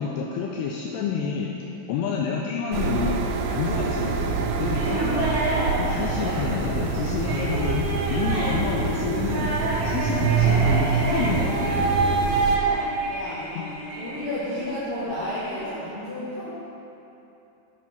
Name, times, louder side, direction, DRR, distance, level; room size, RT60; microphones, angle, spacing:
voice 1, 0.0-1.5 1.9-3.2 3.5-5.3 5.8-9.5 9.8-11.9 13.5-13.6, left 6 dB, 85° left, -1 dB, 2.3 m, -29 dB
sound 1, 2.7-12.6, right 5 dB, 85° right, 2.4 m, -26 dB
sound 2, 4.8-14.7 15.0-15.6, right 2 dB, 60° right, 3.0 m, -28 dB
voice 2, 13.1-13.4 14.0-16.5, left 1 dB, 55° left, -14 dB, 3.4 m, -31 dB
10.0 x 6.2 x 5.4 m, 2.9 s
omnidirectional pair, 5.3 m